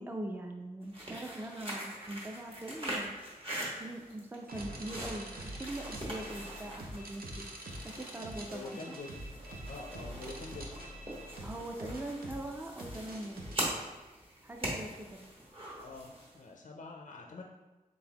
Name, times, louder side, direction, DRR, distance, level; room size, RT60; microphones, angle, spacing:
voice 1, 0.0-3.2 3.6-5.3 5.6-7.5 7.8-8.8 11.4-13.4 14.4-15.2, right 1 dB, 15° right, 3 dB, 0.4 m, -42 dB
sound 1, 0.8-16.4, right 1 dB, 35° right, 1.3 m, -43 dB
sound 2, 4.5-13.6, right 1 dB, 80° right, 0.6 m, -45 dB
voice 2, 7.9-10.7 15.8-17.4, left 3 dB, 60° left, 1 dB, 0.4 m, -47 dB
3.9 x 3.8 x 2.8 m, 1.2 s
wide cardioid pair, 55°, 15 cm